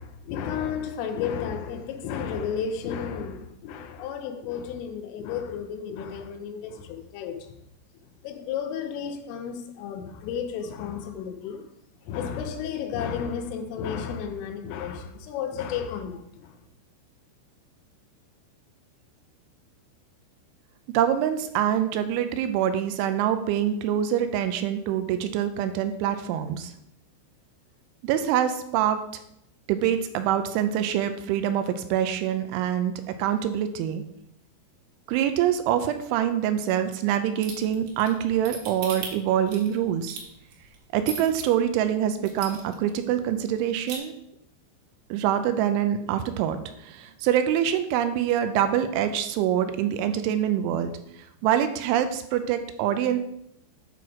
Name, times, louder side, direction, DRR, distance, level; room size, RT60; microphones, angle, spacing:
voice 1, 0.0-7.6 8.2-11.7 12.0-16.6, left 7 dB, 90° left, 3.5 m, -33 dB
voice 2, 20.9-26.7 28.0-29.0 29.7-32.9 33.2-34.0 35.1-40.2 40.9-44.2 45.1-50.9 51.4-53.2, right 10 dB, 80° right, 3.0 m, -25 dB
sound 1, 37.4-41.4 41.9-42.0 42.3-42.9 43.2-43.3 43.6-44.0, right 5 dB, 65° right, 3.6 m, -37 dB
9.3 x 6.0 x 4.9 m
omnidirectional pair, 5.6 m